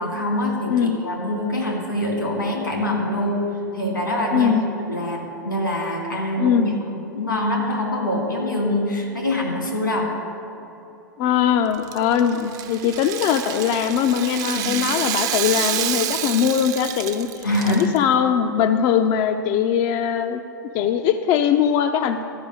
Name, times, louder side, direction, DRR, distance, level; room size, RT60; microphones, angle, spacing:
voice 1, 0.0-3.5 3.7-4.6 4.8-6.6 6.9-10.1 14.5-14.7 17.4-17.9 20.8-20.9, left 1 dB, 85° left, 0 dB, 2.2 m, -24 dB
voice 2, 4.3-4.6 6.4-6.7 11.2-20.4 20.7-22.2, left 8 dB, 40° left, 7 dB, 0.4 m, -21 dB
Rattle (instrument), 11.7-18.0, right 10 dB, 35° right, 0.6 m, -28 dB
12.5 x 5.3 x 6.6 m, 3.0 s
figure-of-eight pair, 90°, 10 cm